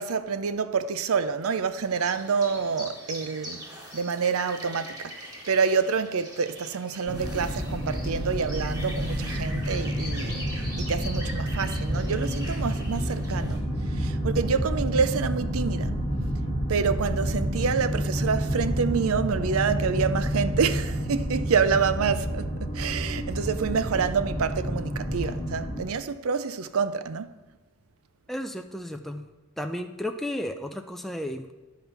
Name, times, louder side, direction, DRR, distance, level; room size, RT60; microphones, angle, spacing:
voice 1, 0.0-3.6 3.9-16.0 16.7-27.4, right 5 dB, 75° right, 0.5 m, -27 dB
sound 1, 1.8-13.6, equal, 15° right, 1.8 m, -42 dB
sound 2, 7.1-25.8, equal, 25° left, 1.6 m, -29 dB
voice 2, 28.3-29.2 29.6-31.5, left 1 dB, ahead, 0.5 m, -33 dB
10.5 x 5.5 x 5.9 m
head